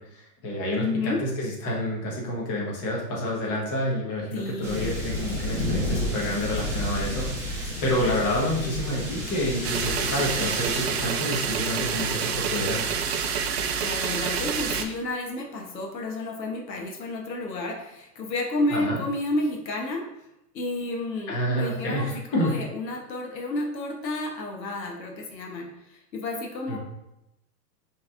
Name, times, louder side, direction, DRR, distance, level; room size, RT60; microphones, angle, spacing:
voice 1, 0.0-12.8 18.7-19.0 21.3-22.5 26.7-26.8, left 1 dB, 30° left, -3 dB, 1.3 m, -28 dB
voice 2, 0.8-1.2 4.3-4.9 13.5-20.0 20.5-26.8, left 2 dB, 90° left, 1 dB, 1.1 m, -31 dB
sound 1, 4.6-10.9, left 1 dB, 5° right, 1.1 m, -31 dB
sound 2, 9.6-14.8, right 6 dB, 40° right, 0.5 m, -28 dB
5.3 x 3.4 x 2.5 m, 0.87 s
hypercardioid pair, 125°, 50 cm